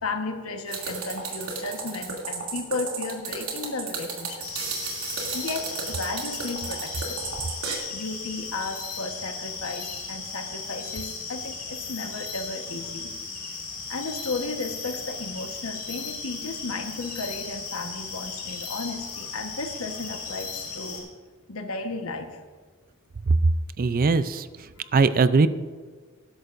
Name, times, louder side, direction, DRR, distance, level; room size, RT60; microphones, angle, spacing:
voice 1, 0.0-4.6 5.3-7.2 7.9-13.1 13.9-21.1 21.5-22.4, left 3 dB, 75° left, 5 dB, 1.2 m, -34 dB
sound 1, 0.7-7.8, right 5 dB, 85° right, 2.6 m, -33 dB
sound 2, 4.4-21.0, left 5 dB, 40° left, 4.2 m, -36 dB
voice 2, 23.8-24.5 24.9-25.5, right 4 dB, 40° right, 14 dB, 0.4 m, -20 dB
19.5 x 11.0 x 2.6 m, 1.5 s
head